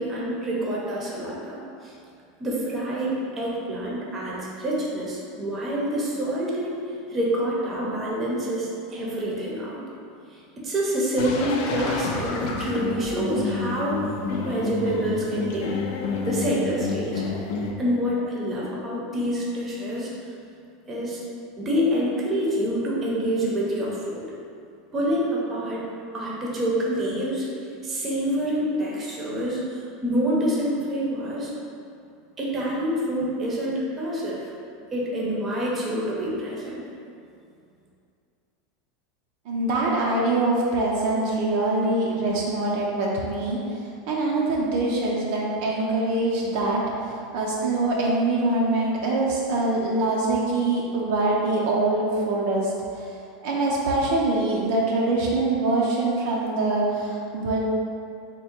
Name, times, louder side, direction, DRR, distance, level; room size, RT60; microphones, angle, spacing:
voice 1, 0.0-1.9 2.4-6.8 7.1-9.8 10.3-15.7 16.3-17.2 17.8-20.1 20.9-21.2 21.6-24.3 24.9-25.8 26.1-27.5 27.8-31.5 32.4-34.5 34.9-36.8, equal, 25° right, -4 dB, 0.7 m, -27 dB
sound 1, 11.2-17.7, left 4 dB, 65° left, 0.4 m, -29 dB
voice 2, 39.5-43.6 44.1-53.2 53.4-57.6, right 2 dB, 60° right, -3 dB, 0.5 m, -24 dB
3.6 x 2.2 x 4.3 m, 2.5 s
supercardioid pair, 150°, 0 cm